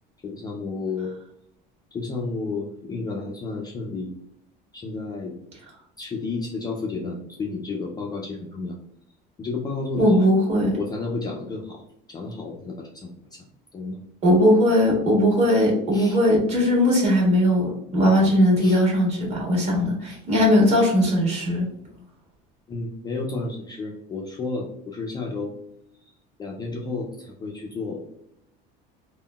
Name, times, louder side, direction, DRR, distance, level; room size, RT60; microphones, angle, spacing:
voice 1, 0.2-1.1 1.9-4.1 4.7-5.4 6.0-8.8 9.4-10.3 10.8-11.8 12.1-13.4 13.7-14.0 15.9-16.2 18.6-18.8 20.1-20.2 22.7-25.5 26.4-28.1, left 3 dB, 20° left, -1 dB, 0.3 m, -31 dB
voice 2, 10.0-10.8 14.2-21.7, equal, 35° right, -4 dB, 1.3 m, -19 dB
3.7 x 2.1 x 2.2 m, 0.77 s
cardioid pair, 145°, 20 cm